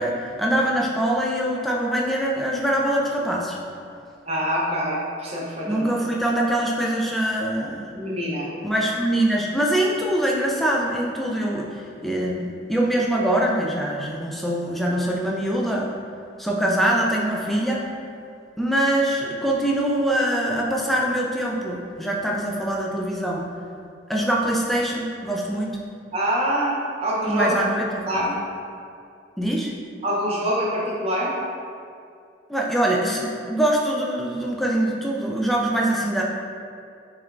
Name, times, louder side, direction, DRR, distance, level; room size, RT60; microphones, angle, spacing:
voice 1, 0.0-3.6 5.7-7.9 8.6-15.9 16.4-17.9 18.6-23.4 24.1-25.8 27.3-28.3 29.4-29.7 32.5-36.2, right 1 dB, ahead, -3 dB, 0.4 m, -23 dB
voice 2, 4.3-5.9 7.9-8.5 26.1-27.6 28.1-28.3 30.0-31.3, equal, 30° right, -5 dB, 0.7 m, -25 dB
5.9 x 3.3 x 2.5 m, 2.4 s
head